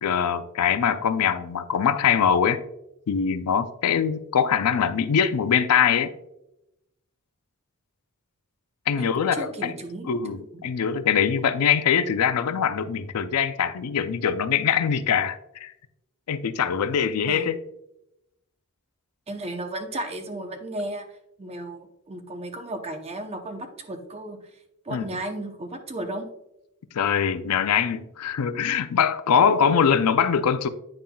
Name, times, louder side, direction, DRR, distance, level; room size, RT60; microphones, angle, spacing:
voice 1, 0.0-2.6 3.1-6.1 8.9-9.7 10.1-15.7 16.3-17.6 24.9-25.0 26.9-30.7, left 7 dB, 85° left, 0.4 m, -23 dB
voice 2, 9.0-10.2 10.5-10.6 17.3-17.5 19.3-21.0 21.4-24.4 24.8-26.3, right 1 dB, 30° right, 0.7 m, -34 dB
8.8 x 5.5 x 2.3 m
head